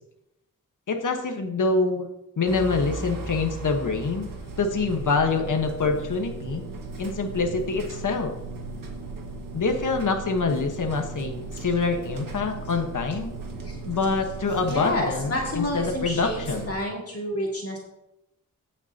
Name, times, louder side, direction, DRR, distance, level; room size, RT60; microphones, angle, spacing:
voice 1, 0.9-2.1 2.4-4.3 4.6-6.6 7.0-8.3 9.5-13.3 13.8-16.8, left 4 dB, 65° left, 4 dB, 1.4 m, -25 dB
sound 1, 2.5-16.7, right 3 dB, 80° right, 1.7 m, -37 dB
voice 2, 14.6-16.4 16.7-17.8, left 1 dB, 45° left, -3 dB, 2.3 m, -29 dB
17.0 x 6.0 x 2.9 m, 0.87 s
wide cardioid pair, 80°, 33 cm